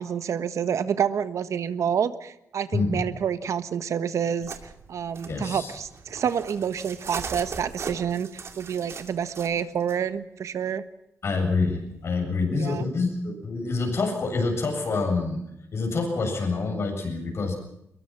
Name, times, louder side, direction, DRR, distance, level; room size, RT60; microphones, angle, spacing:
voice 1, 0.0-4.6 4.9-8.3 8.6-10.8 12.5-12.9, right 8 dB, 75° right, 12 dB, 1.3 m, -28 dB
voice 2, 2.7-3.1 5.3-5.7 11.2-15.4 15.7-17.5, left 3 dB, 55° left, 3 dB, 7.6 m, -27 dB
sound 1, 4.4-10.0 11.3-12.1, right 5 dB, 55° right, 2.6 m, -40 dB
23.5 x 22.0 x 5.8 m, 0.83 s
wide cardioid pair, 135°, 5 cm